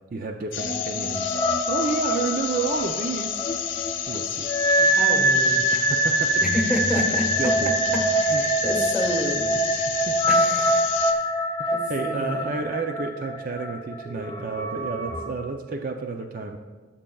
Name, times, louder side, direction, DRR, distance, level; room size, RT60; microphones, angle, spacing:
voice 1, 0.1-1.4 1.7-3.4 4.1-4.5 5.7-6.4 7.1-7.7 8.3-8.4 9.5-10.3 11.6-16.6, right 4 dB, 45° right, 4 dB, 0.4 m, -30 dB
sound 1, 0.5-11.1, left 9 dB, 80° left, 0.8 m, -31 dB
sound 2, 0.6-15.3, right 1 dB, 20° left, 0.5 m, -24 dB
voice 2, 4.8-5.6 6.4-7.3 7.9-9.6 10.3-10.9 11.7-12.4, equal, 5° right, 0 dB, 1.3 m, -29 dB
16.5 x 7.2 x 2.3 m, 1.4 s
head